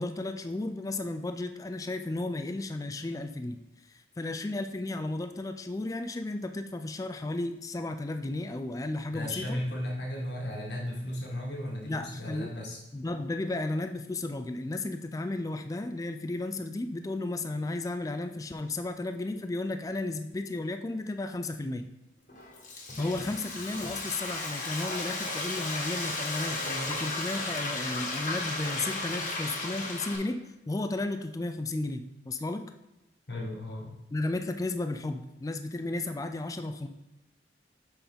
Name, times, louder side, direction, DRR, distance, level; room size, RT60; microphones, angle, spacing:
voice 1, 0.0-3.6 4.2-9.6 11.9-12.6 12.9-21.8 23.0-32.7 34.1-36.9, left 2 dB, 20° left, 7 dB, 0.3 m, -34 dB
voice 2, 9.1-12.8 33.3-33.9, left 1 dB, 70° left, -2 dB, 1.7 m, -35 dB
Frying (food), 22.3-30.2, left 2 dB, 45° left, 1.5 m, -34 dB
6.9 x 5.3 x 3.7 m, 0.97 s
head